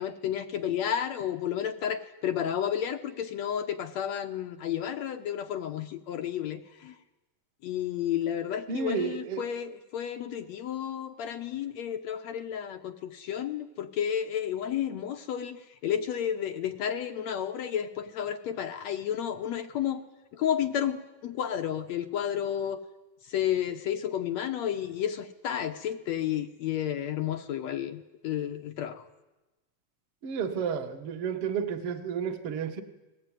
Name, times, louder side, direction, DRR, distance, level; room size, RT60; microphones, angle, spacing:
voice 1, 0.0-7.0 7.6-20.0 20.3-22.8 23.3-29.0, left 9 dB, 70° left, 7 dB, 1.8 m, -31 dB
voice 2, 8.7-9.4 30.2-32.8, right 6 dB, 45° right, 6 dB, 2.2 m, -31 dB
29.5 x 20.5 x 9.2 m, 1.1 s
omnidirectional pair, 4.2 m